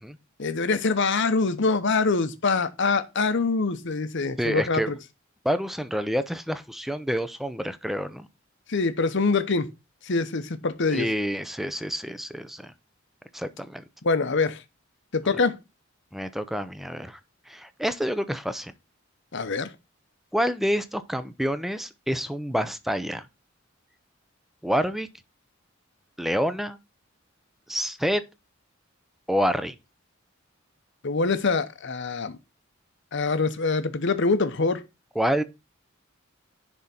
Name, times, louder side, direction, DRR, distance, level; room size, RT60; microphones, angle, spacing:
voice 1, 0.4-4.9 8.7-9.7 10.1-11.1 14.0-14.6 15.1-15.6 19.3-19.7 31.0-32.4 33.1-34.8, left 4 dB, 65° left, 0.9 m, -24 dB
voice 2, 4.4-4.9 5.4-8.3 10.9-12.7 13.3-13.8 16.1-17.2 17.5-18.7 20.3-23.3 24.6-25.1 26.2-26.8 27.7-28.2 29.3-29.7 35.2-35.4, equal, ahead, 0.6 m, -28 dB
10.5 x 3.7 x 4.3 m
head